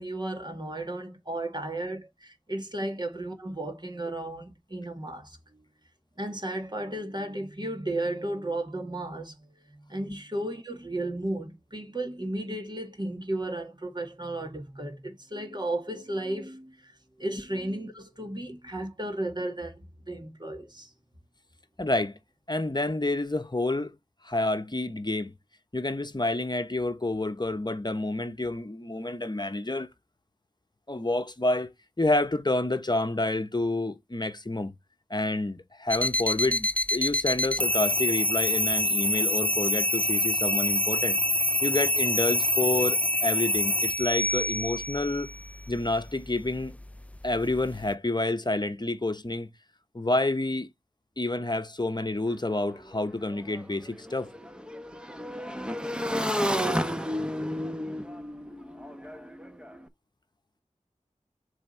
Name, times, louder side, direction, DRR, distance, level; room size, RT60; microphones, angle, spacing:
voice 1, 0.0-5.6 6.2-9.4 9.7-16.9 17.2-20.9, right 1 dB, 35° right, 1.9 m, -34 dB
voice 2, 21.8-22.2 22.5-23.9 24.2-25.3 25.7-29.9 30.9-34.7 35.1-41.2 41.6-45.3 45.7-46.7 47.2-49.5 49.9-50.7 51.2-54.5, left 2 dB, 35° left, 1.0 m, -29 dB
sound 1, 35.9-47.9, left 1 dB, 10° left, 0.3 m, -27 dB
Motorcycle / Engine, 52.3-52.4 52.6-59.8, equal, 5° right, 0.9 m, -32 dB
7.3 x 3.6 x 4.3 m
wide cardioid pair, 50°, 13 cm